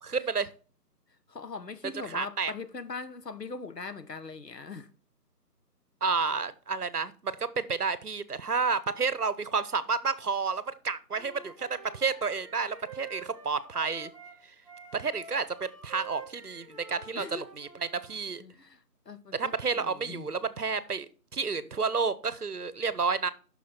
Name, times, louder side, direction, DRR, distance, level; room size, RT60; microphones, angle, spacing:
voice 1, 0.0-0.5 2.0-2.5 6.0-14.1 14.9-17.7 18.0-18.4 19.3-23.3, right 5 dB, 70° right, 1.1 m, -30 dB
voice 2, 1.3-4.9 17.1-17.4 18.4-20.3, left 4 dB, 85° left, 1.3 m, -41 dB
Wind instrument woodwind instrument, 11.1-18.2, right 3 dB, 20° right, 1.1 m, -48 dB
9.3 x 6.3 x 4.3 m
figure-of-eight pair, 165°, 48 cm